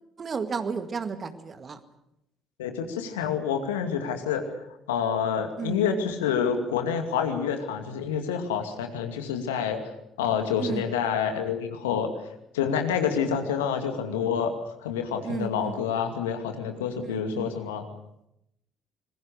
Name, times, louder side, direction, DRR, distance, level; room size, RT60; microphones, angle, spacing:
voice 1, 0.2-1.8 5.6-5.8 10.6-10.8 15.2-15.8 17.0-17.5, right 5 dB, 35° right, 9 dB, 2.0 m, -33 dB
voice 2, 2.6-4.4 4.9-9.8 10.2-12.1 12.5-14.5 14.8-17.9, left 7 dB, 75° left, 6 dB, 2.4 m, -28 dB
26.0 x 21.0 x 6.8 m, 0.83 s
figure-of-eight pair, 50°, 0 cm